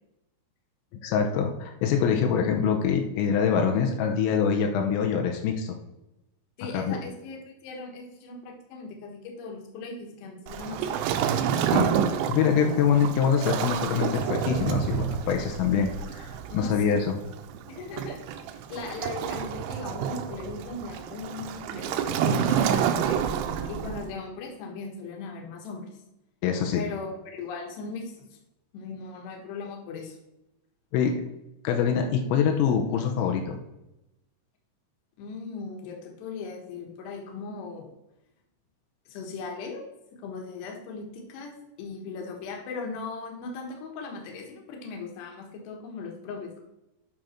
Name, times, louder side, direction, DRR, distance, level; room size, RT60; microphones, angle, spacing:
voice 1, 1.0-5.8 6.7-7.0 11.6-11.9 12.3-17.2 26.4-26.8 30.9-31.2 31.7-33.6, left 7 dB, 85° left, 3 dB, 3.5 m, -24 dB
voice 2, 6.6-11.0 16.5-17.0 17.7-18.2 18.7-23.3 23.7-25.9 26.7-28.4 28.7-30.2 35.2-37.9 39.1-39.8 40.1-41.5 41.8-46.6, left 4 dB, 65° left, 1 dB, 3.2 m, -38 dB
Waves surf, 10.5-24.1, right 8 dB, 85° right, 2.7 m, -29 dB
8.7 x 6.4 x 4.4 m, 0.92 s
omnidirectional pair, 5.9 m